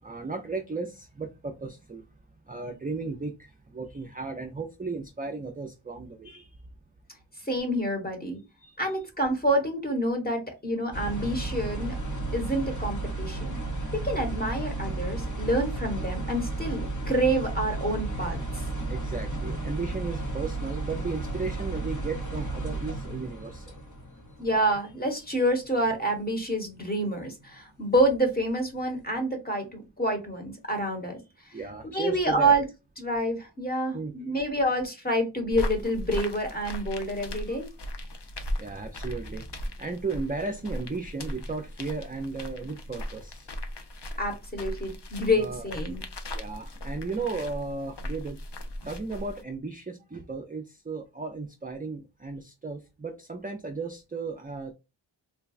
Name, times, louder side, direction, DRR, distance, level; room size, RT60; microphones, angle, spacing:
voice 1, 0.0-2.1 2.5-6.6 8.6-9.0 12.5-12.6 17.2-17.3 18.9-23.8 25.3-25.4 31.5-32.6 33.9-34.3 37.5-37.6 38.2-38.3 38.6-43.5 45.3-45.7 46.3-48.4 48.8-54.7, right 4 dB, 20° right, 0.4 m, -35 dB
voice 2, 7.4-8.4 8.8-11.9 12.3-13.6 13.9-18.6 24.4-31.2 31.9-32.6 33.0-37.7 44.2-46.0, right 1 dB, 20° left, 1.2 m, -27 dB
sound 1, 10.9-25.0 25.3-25.6 26.2-26.4 27.4-27.5 28.0-28.7 29.1-29.2, right 2 dB, 40° left, 1.0 m, -33 dB
sound 2, 35.5-49.4, left 1 dB, 60° left, 0.7 m, -37 dB
3.8 x 2.2 x 2.4 m
wide cardioid pair, 85°, 47 cm